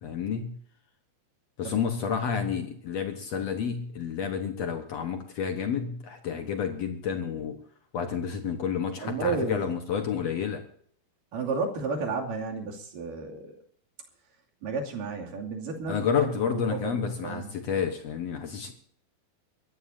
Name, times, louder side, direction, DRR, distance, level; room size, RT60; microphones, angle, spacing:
voice 1, 0.0-0.6 1.6-7.6 7.9-10.6 15.9-18.7, left 7 dB, 70° left, 6 dB, 1.5 m, -30 dB
voice 2, 9.0-9.8 11.3-13.6 14.6-17.5, right 4 dB, 55° right, 1 dB, 4.0 m, -32 dB
24.0 x 15.0 x 2.7 m, 0.62 s
omnidirectional pair, 4.8 m